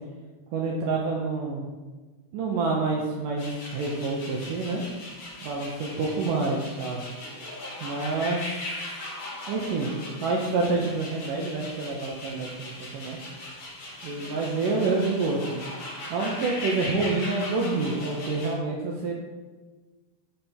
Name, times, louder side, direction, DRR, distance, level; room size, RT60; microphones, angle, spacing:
voice 1, 0.5-1.6 2.3-4.8 5.4-7.0 7.8-8.8 9.5-13.2 14.0-15.6 16.1-19.1, right 3 dB, 75° right, -1 dB, 2.0 m, -28 dB
sound 1, 3.4-18.5, left 1 dB, 45° left, 2.0 m, -39 dB
7.5 x 6.6 x 4.4 m, 1.3 s
omnidirectional pair, 4.6 m